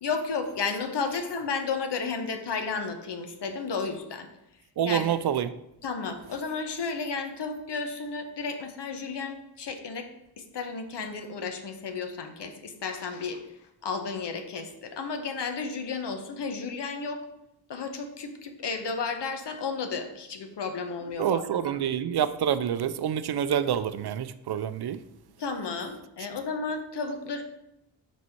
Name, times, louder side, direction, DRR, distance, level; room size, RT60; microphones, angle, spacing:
voice 1, 0.0-4.3 4.8-5.1 5.8-10.1 10.5-13.4 13.8-17.2 17.7-21.8 25.4-27.4, left 4 dB, 75° left, 0.9 m, -33 dB
voice 2, 4.8-5.5 21.2-25.0, right 9 dB, 65° right, 0.5 m, -27 dB
6.1 x 4.2 x 4.4 m
cardioid pair, 65°, 42 cm